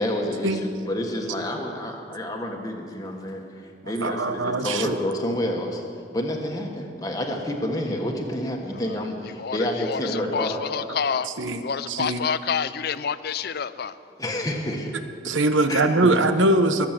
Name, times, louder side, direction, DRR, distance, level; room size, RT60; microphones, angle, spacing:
voice 1, 0.0-5.8 6.1-10.6 14.1-14.9 15.7-16.1, left 1 dB, 20° left, 1 dB, 1.5 m, -29 dB
voice 2, 4.0-5.0 11.4-11.6 11.9-12.2 15.2-16.9, right 2 dB, 85° right, 9 dB, 1.0 m, -21 dB
voice 3, 9.4-11.3 11.6-13.9, left 6 dB, 55° left, 15 dB, 0.4 m, -28 dB
21.5 x 7.4 x 7.5 m, 2.4 s
head